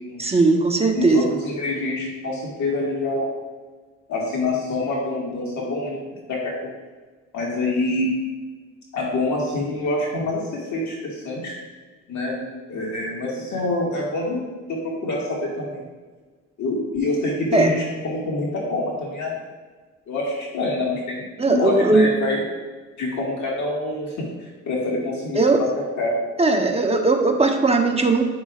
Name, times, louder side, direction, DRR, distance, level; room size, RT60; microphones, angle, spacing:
voice 1, 0.2-1.2 17.5-17.7 21.4-22.1 25.3-25.6 26.4-28.2, right 3 dB, 20° right, 3 dB, 0.9 m, -18 dB
voice 2, 0.9-3.3 4.1-6.0 6.3-6.7 7.3-8.1 8.9-11.6 12.1-14.4 14.7-15.9 16.6-19.3 20.1-22.4 23.0-24.3 24.7-26.2, left 2 dB, 70° left, -3 dB, 2.0 m, -26 dB
10.5 x 6.0 x 2.4 m, 1.4 s
cardioid pair, 90°, 30 cm